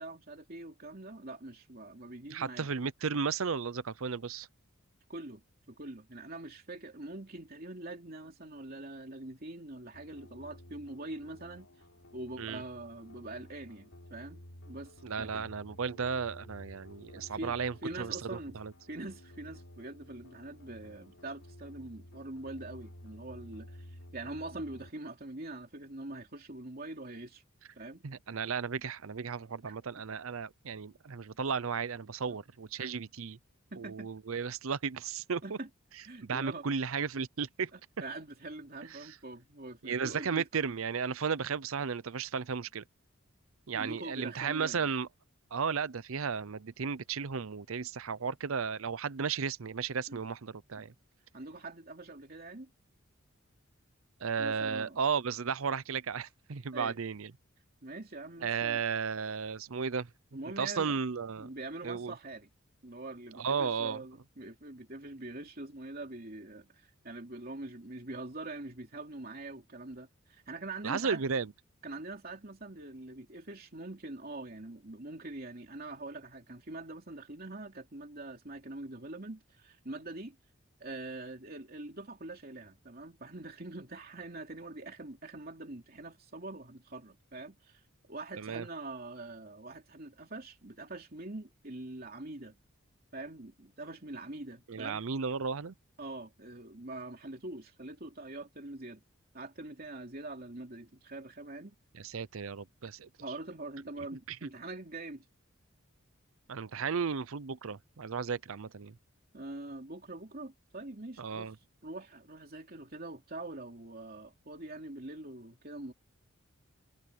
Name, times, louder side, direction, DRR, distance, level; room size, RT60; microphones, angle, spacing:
voice 1, 0.0-2.7 5.1-5.4 5.7-11.7 12.1-15.5 17.1-17.5 17.8-18.5 18.9-27.4 27.8-28.0 29.7-30.0 32.3-32.4 32.8-32.9 33.7-34.1 35.4-35.7 36.0-36.7 37.7-40.5 43.7-44.9 50.1-50.2 50.8-50.9 51.3-52.7 54.4-55.0 56.7-57.0 57.8-58.8 60.3-61.0 61.4-62.5 62.8-71.2 71.8-80.4 80.8-92.6 93.1-95.0 96.0-99.0 99.3-101.7 103.2-105.2 109.3-111.5 111.8-115.9, right 2 dB, 45° right, 3.0 m, -44 dB
voice 2, 2.3-4.5 12.4-12.6 15.0-18.7 28.0-33.4 33.8-35.6 36.2-37.7 39.0-39.1 39.8-42.8 43.7-45.1 45.5-50.9 54.2-57.3 58.4-60.1 60.6-61.5 61.8-62.1 63.4-64.0 70.8-71.5 88.4-88.7 94.7-95.7 101.9-103.1 104.3-104.4 106.5-108.9 111.2-111.5, right 6 dB, 75° right, 0.6 m, -34 dB
sound 1, 9.9-24.9, left 1 dB, 80° left, 4.1 m, -52 dB
head